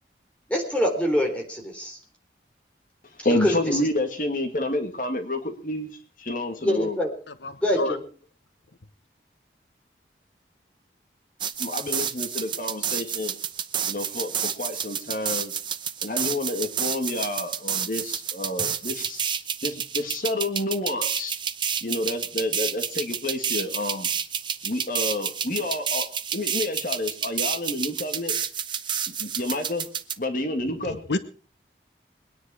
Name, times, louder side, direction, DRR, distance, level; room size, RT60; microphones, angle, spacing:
voice 1, 0.5-2.0 3.4-3.8 6.6-7.1 7.6-8.0, equal, 5° left, 0 dB, 3.9 m, -25 dB
voice 2, 3.2-7.0 11.6-13.3 13.9-15.5 16.0-19.3 19.6-21.4 21.8-24.1 24.6-26.1 26.3-28.4 29.2-29.9 30.2-31.1, left 1 dB, 50° left, 6 dB, 2.1 m, -29 dB
voice 3, 7.4-8.0 30.8-31.2, left 2 dB, 85° left, 11 dB, 1.0 m, -29 dB
sound 1, 11.4-30.2, right 8 dB, 25° right, 0.9 m, -29 dB
22.0 x 10.0 x 5.0 m, 0.40 s
head